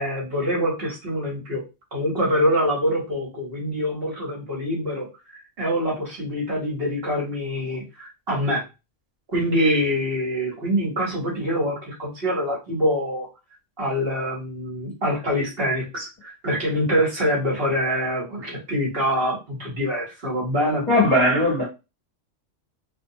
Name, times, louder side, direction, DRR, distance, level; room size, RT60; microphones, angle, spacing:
voice 1, 0.0-1.6 1.9-5.1 5.3-8.6 9.3-13.3 13.8-20.8, equal, 50° right, 1.1 m, -25 dB
voice 2, 20.9-21.7, left 1 dB, 25° left, 0.8 m, -18 dB
2.6 x 2.1 x 2.7 m
omnidirectional pair, 1.4 m